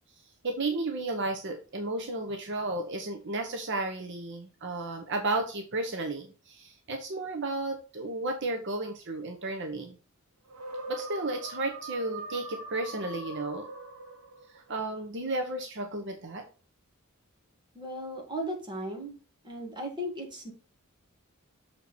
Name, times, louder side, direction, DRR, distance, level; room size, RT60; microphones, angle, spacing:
voice 1, 0.4-10.0 10.9-13.7 14.5-16.4, right 2 dB, 55° right, 4 dB, 1.0 m, -33 dB
sound 1, 10.5-14.6, right 2 dB, 75° right, 1.5 m, -41 dB
voice 2, 17.7-19.2 19.4-20.5, equal, 20° right, 0 dB, 2.1 m, -36 dB
7.0 x 4.4 x 4.3 m, 0.36 s
head